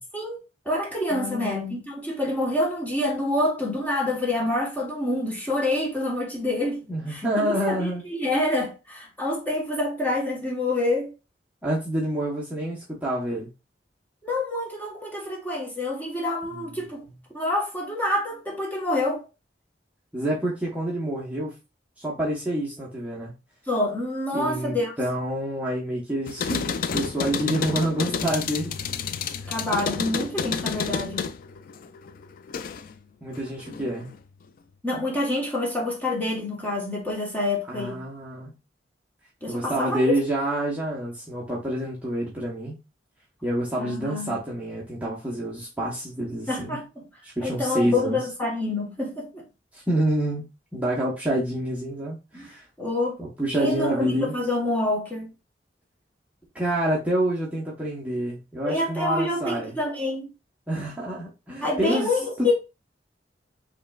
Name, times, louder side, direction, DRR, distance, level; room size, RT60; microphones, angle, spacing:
voice 1, 0.1-6.8 7.1-11.1 14.2-17.0 17.3-19.2 23.7-24.9 29.5-31.3 34.8-38.0 39.4-40.2 43.8-44.4 46.5-46.8 47.4-49.4 52.3-52.5 52.8-53.2 53.6-55.3 58.6-60.3 61.6-62.5, left 2 dB, 10° left, 1.2 m, -27 dB
voice 2, 1.1-1.8 6.9-8.0 11.6-13.5 16.5-16.6 20.1-21.5 22.0-23.3 24.3-28.7 29.3-29.5 33.2-34.1 37.7-38.5 39.5-42.8 43.4-46.8 47.2-48.2 49.7-50.4 50.7-52.6 53.2-54.3 56.5-59.8 60.7-62.1 62.4-62.5, right 1 dB, 10° right, 0.9 m, -27 dB
sound 1, 26.3-33.0 33.3-34.2, left 6 dB, 55° left, 0.3 m, -30 dB
5.0 x 3.1 x 2.3 m
head